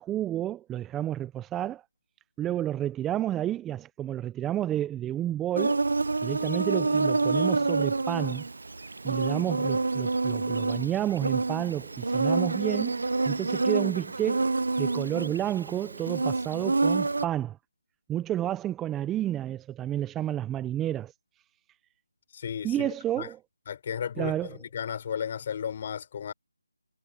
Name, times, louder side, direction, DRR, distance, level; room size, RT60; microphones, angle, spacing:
voice 1, 0.0-1.8 2.4-5.8 6.2-8.4 9.0-14.5 14.8-17.6 18.1-21.1 22.6-23.4 24.2-24.6, right 12 dB, 10° right, 0.5 m, -30 dB
Insect, 5.6-17.3, right 3 dB, 70° right, 0.5 m, -28 dB
voice 2, 22.3-23.3 23.7-26.3, left 8 dB, 35° left, 4.0 m, -34 dB
figure-of-eight pair, 165°, 0 cm